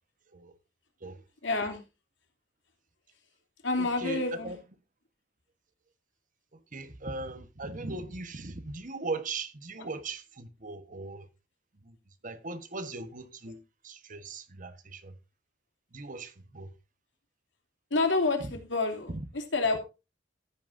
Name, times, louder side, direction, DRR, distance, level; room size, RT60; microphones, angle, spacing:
voice 1, 1.4-1.8 3.6-4.6 9.8-9.9 17.9-19.8, left 3 dB, 85° left, 3.0 m, -28 dB
voice 2, 3.8-4.2 6.7-11.2 11.9-12.0 12.2-13.6 13.8-15.1 15.9-16.7, right 3 dB, 45° right, 1.3 m, -39 dB
14.5 x 9.4 x 2.6 m
head